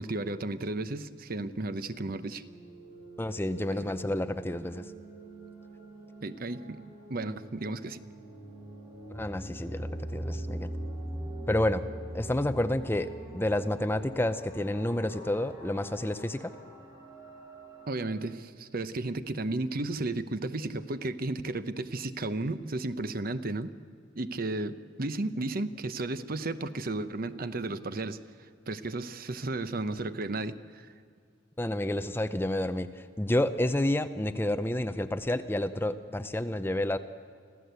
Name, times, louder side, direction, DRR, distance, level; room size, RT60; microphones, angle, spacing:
voice 1, 0.0-2.4 3.8-3.9 6.2-6.8 7.1-8.0 17.9-23.7 24.1-30.9, right 2 dB, 50° right, 12 dB, 0.8 m, -34 dB
sound 1, 2.1-18.1, right 1 dB, 15° right, 5.2 m, -42 dB
voice 2, 3.2-4.9 9.1-10.7 11.5-11.8 12.1-16.5 31.6-37.0, left 1 dB, 10° left, 11 dB, 0.6 m, -30 dB
26.0 x 15.5 x 8.1 m, 2.2 s
head